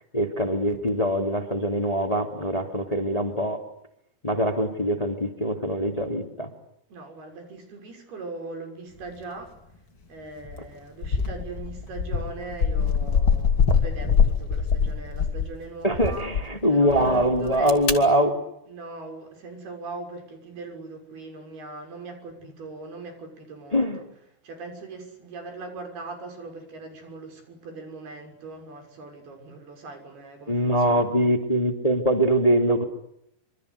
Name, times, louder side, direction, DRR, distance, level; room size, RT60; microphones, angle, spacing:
voice 1, 0.0-3.6 4.2-6.5 15.8-18.3 23.7-24.0 30.5-32.8, equal, 10° left, 2.6 m, -23 dB
voice 2, 6.9-9.5 10.1-16.3 16.7-18.1 18.7-24.0 24.4-31.3, right 3 dB, 80° right, 8.3 m, -40 dB
sound 1, 10.4-10.7 11.0-15.6 15.9-16.5 17.3-17.9, left 6 dB, 35° left, 3.2 m, -23 dB
27.0 x 26.0 x 8.4 m
omnidirectional pair, 4.4 m